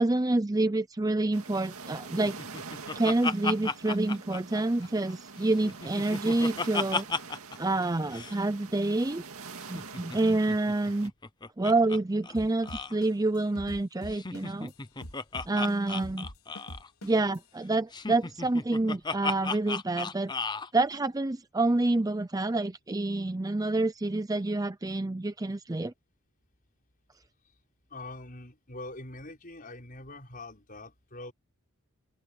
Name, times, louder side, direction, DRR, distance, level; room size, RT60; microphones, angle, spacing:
voice 1, 0.0-2.4 2.9-7.1 7.6-9.2 9.7-11.1 11.6-14.7 15.5-16.3 17.0-20.3 20.7-25.9, right 2 dB, 15° right, 0.5 m, -28 dB
sound 1, 1.3-11.1, right 5 dB, 75° right, 2.2 m, -45 dB
Laughter, 2.2-5.1 5.5-7.6 7.8-7.9 8.1-8.4 9.6-12.0 12.2-12.3 12.6-12.9 14.1-16.9 17.9-20.7, left 4 dB, 20° left, 0.7 m, -35 dB
sound 2, 12.3-14.7 15.0-17.4, left 1 dB, 80° left, 4.2 m, -43 dB
voice 2, 27.9-31.3, left 2 dB, 40° left, 6.3 m, -43 dB
open air
head